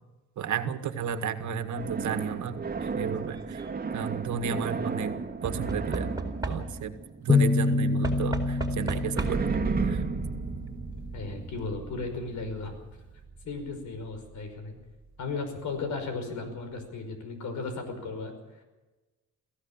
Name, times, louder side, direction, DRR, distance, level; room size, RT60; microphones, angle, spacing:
voice 1, 0.4-3.6 3.9-5.2 5.4-6.1 6.5-6.9 7.2-9.6 9.8-10.0, right 7 dB, 70° right, 8 dB, 1.8 m, -33 dB
sound 1, 1.8-7.7 9.2-14.5, right 4 dB, 30° right, 2.2 m, -34 dB
Knock / Wood, 3.2-3.7 5.4-7.0 8.0-9.6 10.7-10.8 11.0-11.1, right 2 dB, 15° right, 4.3 m, -35 dB
sound 2, 7.3-11.0, left 3 dB, 15° left, 1.5 m, -27 dB
voice 2, 11.1-12.7 13.4-14.8 15.2-18.3, left 3 dB, 75° left, 7 dB, 5.6 m, -35 dB
22.5 x 15.5 x 7.4 m, 1.1 s
cardioid pair, 90°, 30 cm